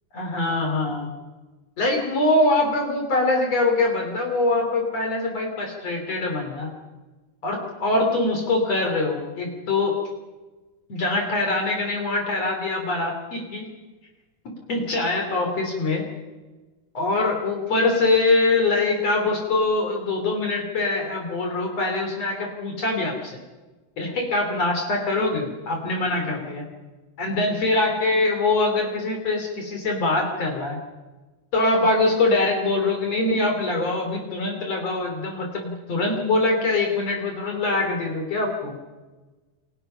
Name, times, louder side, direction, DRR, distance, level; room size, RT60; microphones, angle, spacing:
voice 1, 0.1-1.1 1.8-6.7 7.4-10.0 10.9-13.7 14.5-16.1 16.9-23.4 24.0-26.6 27.2-30.8 31.5-38.7, left 2 dB, 50° left, 2 dB, 4.1 m, -23 dB
29.0 x 23.0 x 5.7 m, 1.2 s
omnidirectional pair, 3.8 m